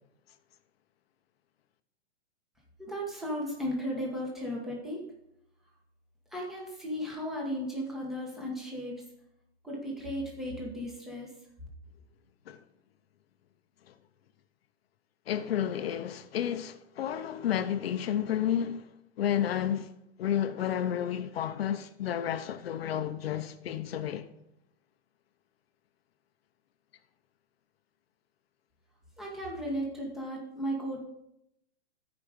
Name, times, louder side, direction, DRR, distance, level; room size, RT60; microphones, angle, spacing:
voice 1, 2.8-5.1 6.3-9.0 9.6-11.4 29.2-31.0, equal, ahead, 1.2 m, -35 dB
voice 2, 15.3-18.9 19.2-19.9 20.2-24.3, left 10 dB, 60° left, 0.7 m, -31 dB
13.0 x 5.1 x 5.0 m
hypercardioid pair, 170°, 34 cm